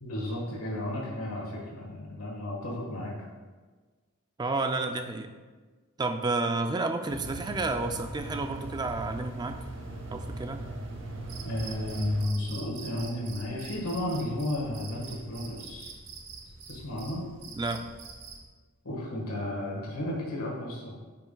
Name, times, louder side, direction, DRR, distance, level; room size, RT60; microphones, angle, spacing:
voice 1, 0.0-3.1 11.4-15.9 16.7-17.2 18.8-20.9, left 1 dB, 80° left, -4 dB, 1.4 m, -33 dB
voice 2, 4.4-5.3 6.0-9.6 10.1-10.6 17.5-17.9, right 3 dB, 20° right, 7 dB, 0.3 m, -30 dB
sound 1, 7.1-12.2, right 2 dB, 55° right, 0.9 m, -39 dB
Cricket, 11.3-18.5, right 4 dB, 80° right, 1.1 m, -45 dB
8.9 x 5.7 x 2.2 m, 1.4 s
head